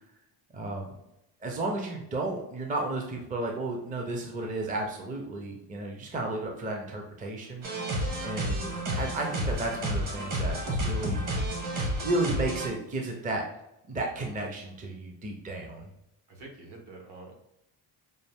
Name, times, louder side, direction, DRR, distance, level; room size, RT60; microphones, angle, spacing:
voice 1, 0.5-1.0 1.4-11.3 12.0-13.4 13.9-15.9, right 2 dB, 20° right, 1 dB, 0.6 m, -33 dB
sound 1, 7.6-12.7, right 1 dB, 45° right, 1.3 m, -30 dB
voice 2, 16.3-17.4, right 2 dB, 65° right, 1 dB, 1.5 m, -46 dB
5.3 x 2.5 x 3.5 m, 0.86 s
cardioid pair, 135°, 43 cm